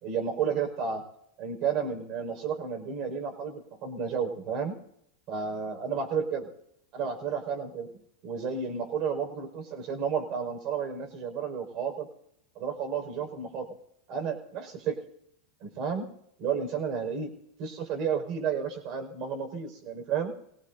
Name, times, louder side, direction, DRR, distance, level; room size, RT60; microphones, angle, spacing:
voice 1, 0.0-1.0 1.4-4.8 5.3-6.5 6.9-7.9 8.2-12.1 12.6-13.7 14.1-15.0 15.6-16.1 16.4-17.3 17.6-20.3, right 6 dB, 50° right, 5 dB, 5.2 m, -32 dB
24.0 x 18.0 x 2.7 m, 0.73 s
hypercardioid pair, 110°, 0 cm